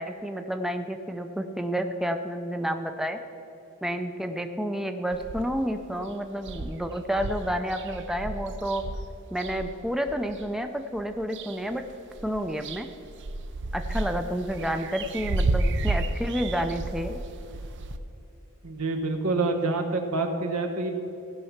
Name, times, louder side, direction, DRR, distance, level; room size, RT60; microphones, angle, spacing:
voice 1, 0.0-3.2 3.8-8.8 9.3-11.8 12.2-12.9 13.7-17.2, equal, ahead, 6 dB, 0.4 m, -30 dB
sound 1, 5.1-5.7 6.1-6.2 6.4-10.4 11.0-11.8 12.1-18.0, right 2 dB, 55° right, 0.5 m, -32 dB
voice 2, 18.6-20.9, right 3 dB, 80° right, 4 dB, 1.2 m, -27 dB
16.0 x 5.5 x 5.8 m, 2.9 s
head